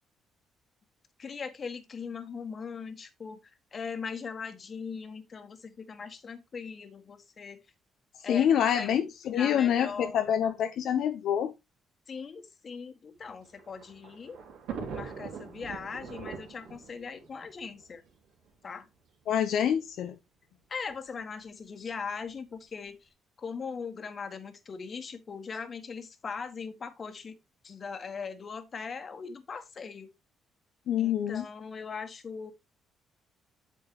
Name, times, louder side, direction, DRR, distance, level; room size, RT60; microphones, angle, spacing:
voice 1, 1.2-3.4 3.7-7.6 8.2-8.5 8.7-8.9 9.3-10.2 12.1-14.4 14.9-18.0 18.6-18.9 20.7-23.1 23.4-27.4 27.6-30.1 31.0-32.5, left 5 dB, 40° left, 1.7 m, -40 dB
voice 2, 8.3-11.5 19.3-20.2 30.9-31.4, left 9 dB, 70° left, 0.8 m, -26 dB
Thunder, 13.2-18.5 19.4-19.5 19.7-19.8 20.9-21.2, right 6 dB, 85° right, 2.8 m, -42 dB
8.6 x 7.0 x 3.1 m
cardioid pair, 105°, 0 cm